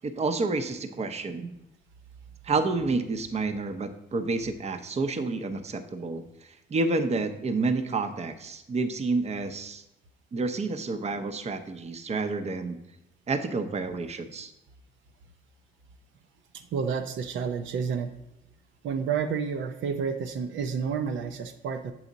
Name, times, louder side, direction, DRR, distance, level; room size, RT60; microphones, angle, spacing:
voice 1, 0.0-1.5 2.4-9.8 10.3-12.8 13.3-14.5, right 3 dB, 35° right, 8 dB, 0.7 m, -29 dB
voice 2, 16.7-18.1 18.8-21.9, right 6 dB, 75° right, 8 dB, 0.6 m, -30 dB
7.3 x 4.8 x 4.0 m, 0.88 s
cardioid pair, 90°, 20 cm